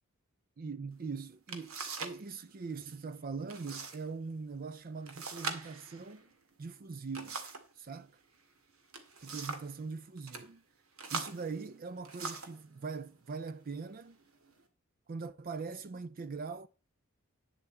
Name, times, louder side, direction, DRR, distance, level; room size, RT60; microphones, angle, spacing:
voice 1, 0.6-6.3 6.6-7.5 7.8-8.1 9.2-10.6 11.1-14.2 15.1-16.7, right 4 dB, 45° right, 0.5 m, -42 dB
sound 1, 1.0-1.1 1.5-2.2 2.5-3.0 3.5-4.0 4.3-4.4 5.1-7.7 8.7-9.8 10.2-10.5 11.0-12.6 13.4-13.6 14.1-14.6, right 4 dB, 80° right, 2.1 m, -42 dB
9.9 x 7.3 x 4.3 m
head